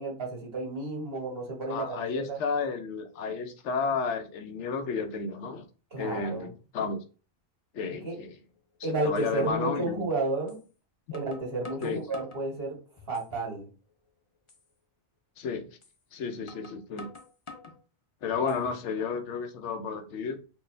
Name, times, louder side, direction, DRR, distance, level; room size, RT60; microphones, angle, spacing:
voice 1, 0.0-2.4 5.9-6.5 8.0-8.2 8.8-10.6 11.1-12.8 13.1-13.7 18.4-18.6, right 2 dB, 55° right, -2 dB, 1.8 m, -32 dB
voice 2, 1.7-5.6 6.0-6.5 6.7-7.0 7.7-8.4 9.0-10.1 11.8-12.0 15.4-15.7 16.1-17.1 18.2-20.4, left 5 dB, 75° left, 7 dB, 0.9 m, -32 dB
sound 1, 8.6-8.7 9.2-9.3 10.5-10.6 11.1-12.5 13.0-13.5 13.9-14.0 14.5-14.7 15.8-16.0 16.5-17.8 18.3-18.9, left 4 dB, 35° left, 0.5 m, -48 dB
4.5 x 2.4 x 3.2 m, 0.35 s
omnidirectional pair, 1.2 m